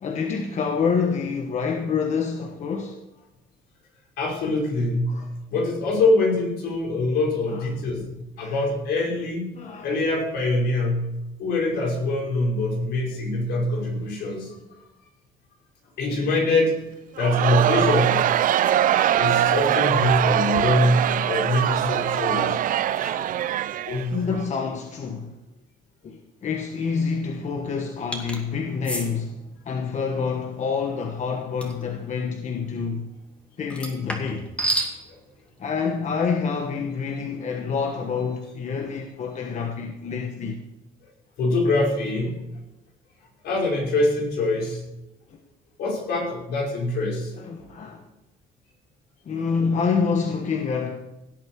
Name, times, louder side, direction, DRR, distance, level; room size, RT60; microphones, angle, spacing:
voice 1, 0.0-3.1 5.1-5.3 7.5-7.6 8.4-8.6 9.5-9.9 24.1-25.4 26.0-33.1 33.6-34.5 35.6-40.6 45.3-45.4 47.4-48.0 49.2-51.0, left 5 dB, 45° left, 1.3 m, -27 dB
voice 2, 4.2-5.2 5.5-8.1 8.4-9.6 9.8-11.1 11.4-14.5 16.0-16.8 17.2-18.5 19.2-22.6 22.9-23.3 23.8-24.2 41.4-42.4 43.4-44.8 45.8-47.3, left 2 dB, 75° left, 5.4 m, -24 dB
Crowd, 17.2-24.4, right 11 dB, 55° right, 0.5 m, -22 dB
sound 1, 28.1-28.4 28.8-29.1 31.6-31.8 33.7-34.9, right 1 dB, 5° left, 2.4 m, -28 dB
17.0 x 8.1 x 4.7 m
cardioid pair, 110°, 17 cm